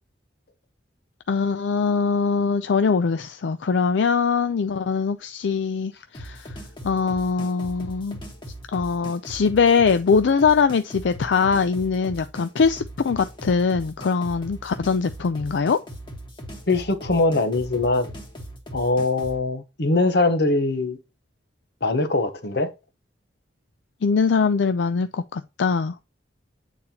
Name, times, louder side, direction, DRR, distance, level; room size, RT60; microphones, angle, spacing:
voice 1, 1.3-6.5 6.8-8.2 8.7-15.8 24.0-26.1, left 5 dB, 80° left, 0.4 m, -22 dB
sound 1, 6.1-19.4, equal, 25° left, 1.4 m, -39 dB
voice 2, 16.7-18.1 18.7-21.0 21.8-22.7, left 2 dB, 65° left, 0.9 m, -22 dB
8.7 x 4.2 x 2.8 m
head